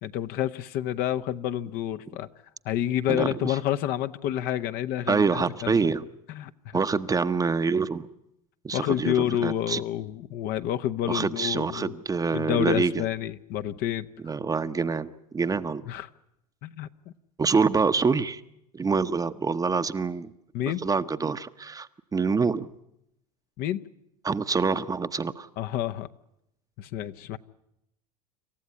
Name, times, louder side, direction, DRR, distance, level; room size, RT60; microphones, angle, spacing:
voice 1, 0.0-2.3 2.6-5.7 6.3-6.8 8.7-11.9 12.3-14.1 15.9-16.1 16.6-16.9 20.5-20.8 23.6-23.8 25.6-26.1 26.8-27.4, left 11 dB, 55° left, 0.9 m, -29 dB
voice 2, 5.1-6.0 6.7-8.1 8.6-9.1 9.4-9.8 11.1-13.0 14.2-15.8 17.4-18.4 18.7-20.3 20.8-22.7 24.2-25.5, right 4 dB, 20° right, 0.9 m, -26 dB
27.0 x 14.5 x 9.8 m
hypercardioid pair, 85°, 19 cm